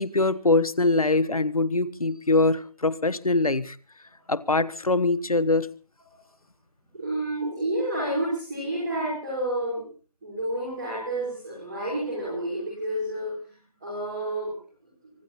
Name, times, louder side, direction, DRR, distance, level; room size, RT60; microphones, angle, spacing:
voice 1, 0.0-3.8 4.3-5.7, left 2 dB, 65° left, 18 dB, 1.3 m, -23 dB
voice 2, 6.9-9.8 10.2-13.3 13.8-14.5, right 1 dB, 5° right, -13 dB, 3.5 m, -29 dB
25.0 x 12.0 x 4.2 m, 0.39 s
figure-of-eight pair, 180°, 20 cm